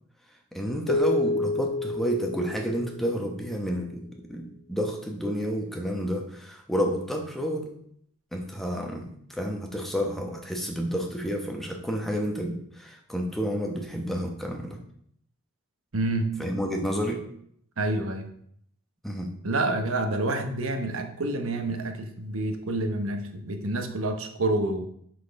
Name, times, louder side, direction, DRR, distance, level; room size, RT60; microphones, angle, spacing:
voice 1, 0.5-7.7 8.3-14.8 16.4-17.3 19.0-19.4, equal, ahead, 1 dB, 1.0 m, -30 dB
sound 1, 0.9-3.4, left 2 dB, 85° left, 0.5 m, -29 dB
voice 2, 15.9-16.4 17.8-18.3 19.4-24.9, right 2 dB, 80° right, 6 dB, 1.0 m, -28 dB
6.2 x 6.1 x 5.3 m, 0.68 s
head